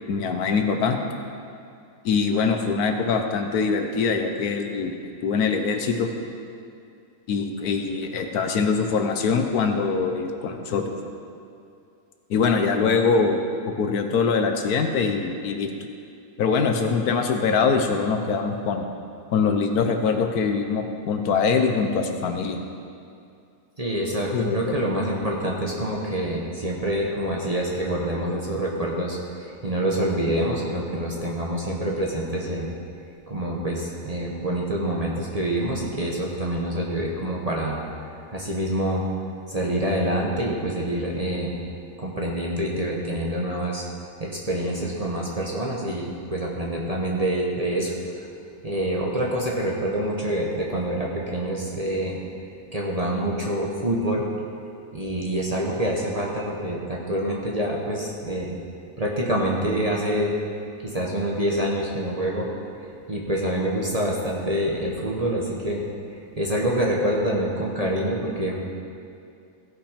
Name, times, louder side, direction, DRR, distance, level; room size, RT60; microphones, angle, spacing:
voice 1, 0.1-1.0 2.0-4.9 5.2-6.1 7.3-10.9 12.3-13.4 13.7-15.7 16.4-18.9 19.3-22.6 24.3-24.6, left 5 dB, 70° left, 5 dB, 1.3 m, -23 dB
voice 2, 23.8-32.7 33.3-37.8 38.3-39.0 39.5-41.6 42.0-43.9 44.2-47.9 48.6-52.2 52.7-54.2 54.9-58.5 59.0-60.3 60.9-62.5 63.1-65.8 66.4-68.6, right 1 dB, 25° right, -3 dB, 1.0 m, -26 dB
16.0 x 5.7 x 5.0 m, 2.5 s
omnidirectional pair, 1.7 m